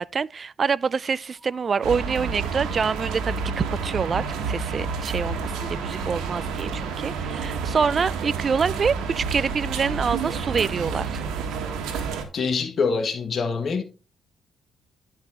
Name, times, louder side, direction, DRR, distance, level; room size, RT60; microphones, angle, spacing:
voice 1, 0.0-11.2, right 5 dB, 40° right, 0.3 m, -26 dB
sound 1, 1.3-6.3, left 2 dB, 10° right, 4.1 m, -50 dB
sound 2, 1.8-12.2, right 5 dB, 90° right, 1.6 m, -29 dB
voice 2, 12.3-13.8, left 5 dB, 50° left, 1.6 m, -25 dB
10.5 x 5.5 x 3.7 m
cardioid pair, 90°, 0 cm